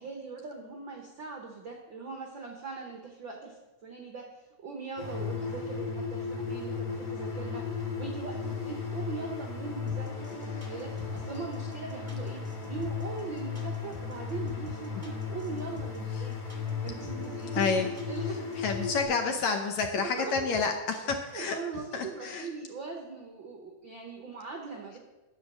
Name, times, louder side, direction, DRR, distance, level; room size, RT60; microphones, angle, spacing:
voice 1, 0.0-4.2 4.6-16.4 16.8-18.9 19.9-20.3 21.3-25.0, right 4 dB, 75° right, 2 dB, 1.1 m, -40 dB
sound 1, 5.0-19.0, left 5 dB, 45° left, 2.8 m, -35 dB
sound 2, 9.9-21.6, right 3 dB, 5° right, 1.4 m, -47 dB
voice 2, 17.5-17.9 18.6-21.6 21.9-22.5, left 5 dB, 70° left, 4 dB, 1.8 m, -29 dB
10.5 x 7.8 x 6.2 m, 1.1 s
omnidirectional pair, 3.9 m